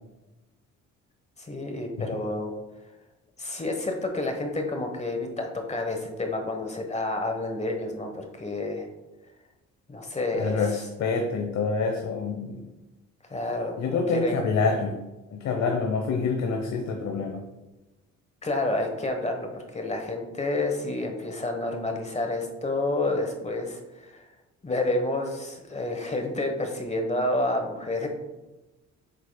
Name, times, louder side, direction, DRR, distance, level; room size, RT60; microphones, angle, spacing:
voice 1, 1.4-2.5 3.4-8.9 9.9-10.7 13.3-14.4 18.4-24.3 24.6-28.1, left 2 dB, 20° left, 4 dB, 1.1 m, -29 dB
voice 2, 10.3-12.6 13.8-15.0 15.3-17.4, left 4 dB, 65° left, 3 dB, 0.9 m, -27 dB
8.0 x 6.7 x 2.2 m, 1.1 s
cardioid pair, 90°, 30 cm